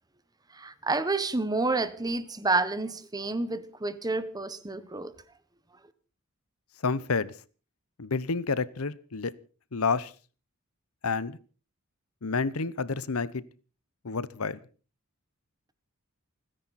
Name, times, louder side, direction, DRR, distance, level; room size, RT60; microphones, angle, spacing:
voice 1, 0.5-5.1, right 3 dB, 20° right, 1.2 m, -29 dB
voice 2, 6.8-7.3 8.0-9.3 9.7-10.1 11.0-11.4 12.2-13.4 14.0-14.6, left 4 dB, 80° left, 0.9 m, -29 dB
29.5 x 10.5 x 4.2 m
head